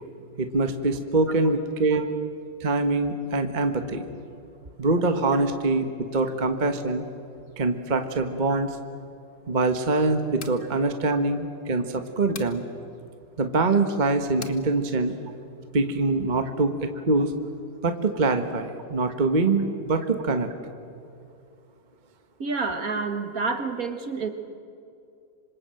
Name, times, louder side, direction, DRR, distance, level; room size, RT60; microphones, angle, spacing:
voice 1, 0.4-2.1 2.6-4.0 4.8-7.0 7.6-8.7 9.5-12.6 13.4-15.1 15.7-17.3 17.8-20.5, right 3 dB, 25° right, 7 dB, 1.3 m, -24 dB
sound 1, 10.4-10.6 12.3-12.6 14.4-14.6, left 6 dB, 45° left, 1.6 m, -40 dB
voice 2, 22.4-24.3, right 4 dB, 50° right, 7 dB, 2.0 m, -29 dB
26.5 x 26.0 x 7.8 m, 2.5 s
omnidirectional pair, 2.1 m